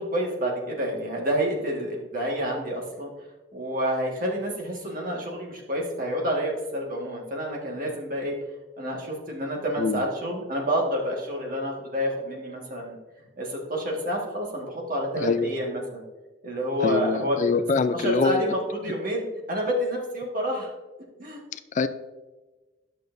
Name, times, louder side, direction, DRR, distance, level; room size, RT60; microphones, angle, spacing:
voice 1, 0.0-3.1 3.5-8.4 8.8-13.0 13.4-16.0 16.4-17.6 17.9-20.7 21.2-21.4, equal, 50° right, -1 dB, 1.7 m, -28 dB
voice 2, 15.2-15.5 16.8-18.4 21.5-21.9, left 4 dB, 40° left, 12 dB, 0.3 m, -24 dB
11.5 x 6.5 x 2.6 m, 1.2 s
head